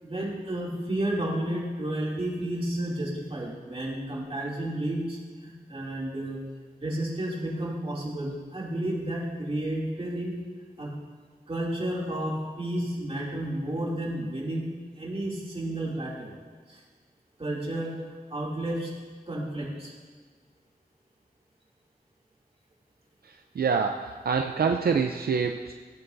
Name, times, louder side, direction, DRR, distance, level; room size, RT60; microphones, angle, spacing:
voice 1, 0.0-6.4 6.8-10.4 10.8-10.9 11.5-14.7 15.0-16.3 16.7-16.8 17.4-17.9 18.3-18.9 19.3-19.9, right 1 dB, 40° right, -5 dB, 2.7 m, -31 dB
voice 2, 23.2-25.7, right 5 dB, 75° right, 4 dB, 0.5 m, -26 dB
16.5 x 8.8 x 2.6 m, 1.5 s
wide cardioid pair, 85°, 16 cm